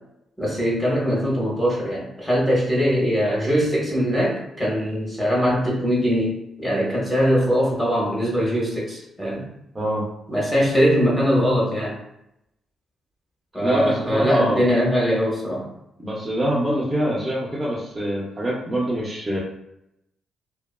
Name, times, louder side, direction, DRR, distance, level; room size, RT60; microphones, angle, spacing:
voice 1, 0.4-9.5 10.3-12.0 13.5-15.7, equal, 10° left, -4 dB, 0.7 m, -21 dB
voice 2, 13.6-14.6 16.0-19.4, right 1 dB, 15° right, -6 dB, 0.5 m, -24 dB
2.7 x 2.3 x 2.2 m, 0.82 s
cardioid pair, 145°, 0 cm